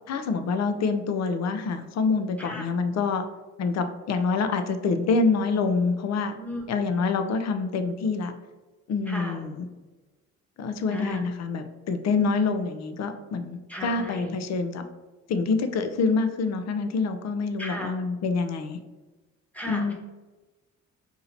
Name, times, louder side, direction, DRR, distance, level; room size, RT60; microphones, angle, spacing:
voice 1, 0.1-3.2 3.6-6.3 6.7-8.3 8.9-9.7 10.6-14.8 15.3-18.8 19.6-19.9, left 4 dB, 60° left, 8 dB, 0.6 m, -26 dB
voice 2, 6.4-6.8 9.1-9.4 10.9-11.2 13.7-14.3 17.6-17.9 19.5-19.9, left 1 dB, 5° left, -1 dB, 1.1 m, -35 dB
4.3 x 2.8 x 4.0 m, 1.2 s
cardioid pair, 90°, 30 cm